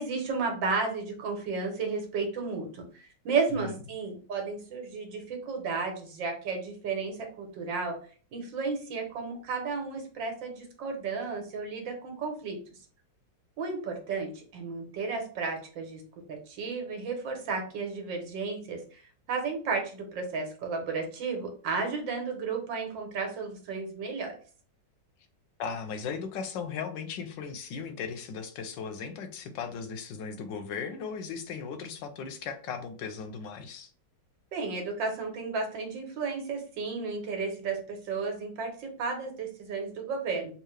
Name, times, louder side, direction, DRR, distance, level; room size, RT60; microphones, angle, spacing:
voice 1, 0.0-8.0 8.3-12.6 13.6-16.0 16.3-19.0 19.3-24.4 34.5-40.5, right 4 dB, 80° right, 3 dB, 1.7 m, -33 dB
voice 2, 25.6-33.9, left 6 dB, 90° left, 8 dB, 1.3 m, -37 dB
3.6 x 2.7 x 3.2 m, 0.41 s
omnidirectional pair, 2.0 m